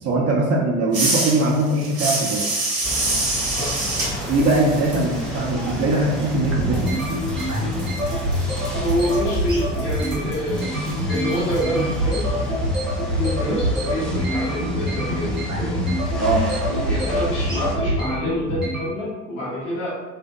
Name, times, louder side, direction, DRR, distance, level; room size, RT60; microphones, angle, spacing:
voice 1, 0.0-2.4 4.3-7.0 16.2-16.4, right 2 dB, 40° right, -2 dB, 0.7 m, -21 dB
sound 1, 0.9-6.5 6.7-11.6, right 2 dB, 60° right, 1.1 m, -28 dB
sound 2, 2.8-17.8, left 2 dB, ahead, 0.3 m, -31 dB
voice 2, 3.5-3.8 8.8-10.7 11.1-12.3 13.1-15.9 16.7-20.0, equal, 65° left, -7 dB, 1.0 m, -27 dB
sound 3, 3.6-18.8, equal, 90° right, 0.6 m, -25 dB
2.7 x 2.5 x 2.2 m, 1.2 s
figure-of-eight pair, 55°, 39 cm